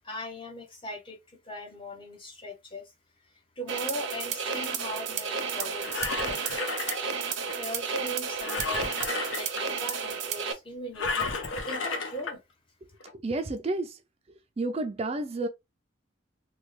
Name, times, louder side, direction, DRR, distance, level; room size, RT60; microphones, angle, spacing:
voice 1, 0.0-2.9 3.6-6.6 7.5-11.3 11.7-12.4, equal, 25° left, 0.7 m, -39 dB
sound 1, 3.7-10.5, right 6 dB, 70° right, 0.6 m, -32 dB
Engine, 5.6-7.5 8.4-9.7 11.0-12.3 13.0-13.1, left 4 dB, 75° left, 0.7 m, -32 dB
voice 2, 13.1-14.0 14.6-15.5, right 2 dB, 30° right, 0.4 m, -30 dB
3.2 x 2.3 x 3.1 m
head